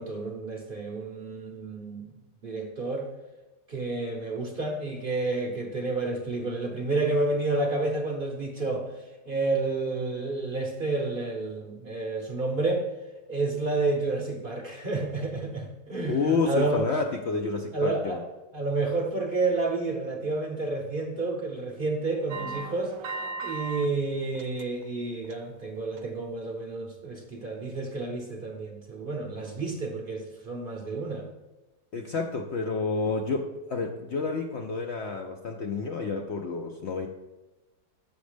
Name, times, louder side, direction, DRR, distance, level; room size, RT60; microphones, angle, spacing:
voice 1, 0.0-2.1 2.4-3.1 3.7-8.9 9.3-12.9 13.3-16.9 17.7-18.2 18.5-22.9 23.4-31.3, right 3 dB, 45° right, 2 dB, 0.8 m, -30 dB
voice 2, 16.0-18.2 31.9-37.1, left 4 dB, 65° left, 3 dB, 0.7 m, -29 dB
sound 1, 22.3-23.9 24.2-24.9 25.2-25.5 26.0-26.1, right 4 dB, 70° right, 0.9 m, -36 dB
7.2 x 6.1 x 5.0 m, 1.1 s
omnidirectional pair, 1.7 m